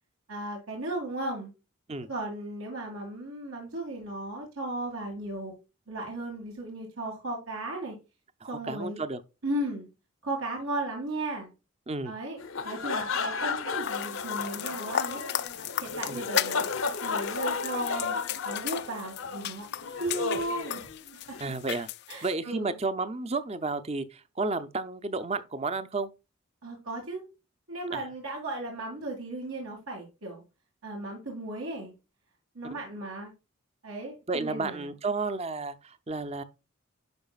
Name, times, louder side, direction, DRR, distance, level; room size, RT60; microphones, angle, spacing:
voice 1, 0.3-1.5 2.1-5.5 5.9-8.0 8.5-9.0 9.4-9.9 10.2-11.5 12.0-12.4 12.6-15.2 15.5-15.6 15.8-16.7 17.0-18.2 18.4-19.7 20.0-20.8 21.1-21.4 22.1-22.7 26.6-27.2 27.7-30.4 30.8-31.9 32.5-33.3 33.8-34.9, right 1 dB, 80° right, 2.3 m, -35 dB
voice 2, 8.4-9.2 11.9-12.1 16.1-16.2 21.4-21.9 22.2-26.1 27.9-28.0 32.7-32.8 34.3-36.4, right 3 dB, 30° right, 0.6 m, -32 dB
sound 1, 12.4-21.4, left 4 dB, 70° left, 0.8 m, -33 dB
sound 2, 13.8-22.3, left 11 dB, 50° left, 0.4 m, -36 dB
10.5 x 4.9 x 2.4 m
head